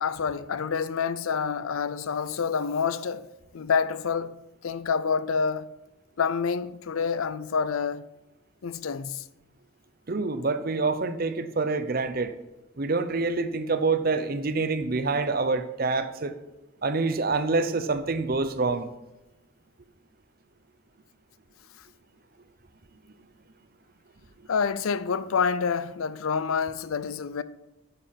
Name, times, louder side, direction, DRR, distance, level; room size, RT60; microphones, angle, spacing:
voice 1, 0.0-3.3 3.5-5.7 6.2-8.1 8.6-9.2 24.5-27.4, left 6 dB, 80° left, 0.5 m, -27 dB
voice 2, 10.1-12.3 12.8-16.3 16.8-18.9, right 3 dB, 45° right, 0.7 m, -26 dB
9.8 x 6.8 x 5.8 m
head